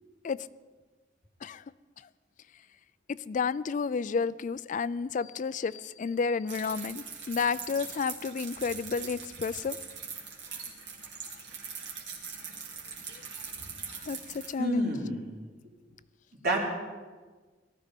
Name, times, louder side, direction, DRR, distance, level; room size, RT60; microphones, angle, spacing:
voice 1, 3.3-9.8 14.1-14.2 14.5-14.8, left 5 dB, 45° left, 17 dB, 0.4 m, -31 dB
sound 1, 6.5-14.5, right 6 dB, 85° right, 3.1 m, -42 dB
voice 2, 14.6-15.3 16.4-16.6, right 1 dB, 60° right, -2 dB, 3.5 m, -28 dB
19.0 x 13.5 x 5.2 m, 1.4 s
head